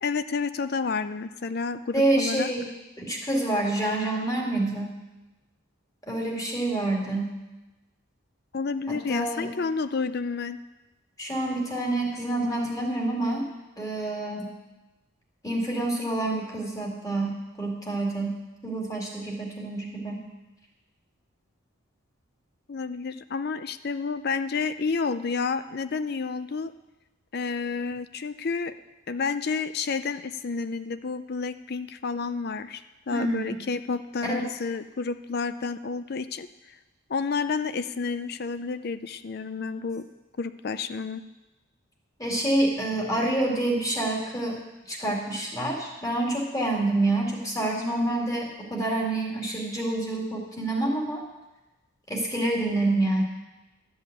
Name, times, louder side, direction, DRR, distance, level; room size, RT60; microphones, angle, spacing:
voice 1, 0.0-2.5 8.5-10.6 22.7-26.7 27.3-28.7 29.1-32.8 33.1-36.5 37.1-40.0 40.4-41.2, left 4 dB, 50° left, 12 dB, 0.5 m, -30 dB
voice 2, 1.9-2.6 3.0-5.0 6.1-7.4 8.9-9.5 11.2-13.5 13.8-14.5 15.4-20.3 33.1-33.5 34.3-34.4 42.2-44.6 44.9-51.2 52.1-53.2, right 2 dB, 15° left, -1 dB, 2.2 m, -27 dB
12.5 x 5.6 x 9.2 m, 1.1 s
head